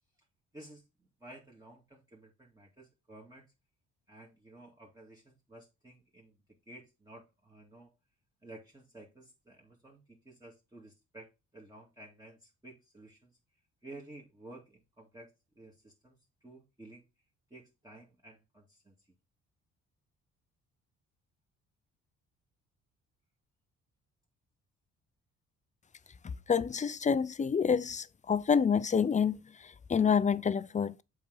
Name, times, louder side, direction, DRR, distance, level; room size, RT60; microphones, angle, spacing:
voice 1, 0.5-0.8 1.2-3.5 4.1-6.4 6.7-7.9 8.4-13.4 13.8-15.3 15.6-16.2 16.4-17.1 17.5-18.9, right 2 dB, 10° right, 2.1 m, -53 dB
voice 2, 26.2-31.0, left 6 dB, 25° left, 0.5 m, -28 dB
7.0 x 4.9 x 4.0 m
cardioid pair, 90°, 30 cm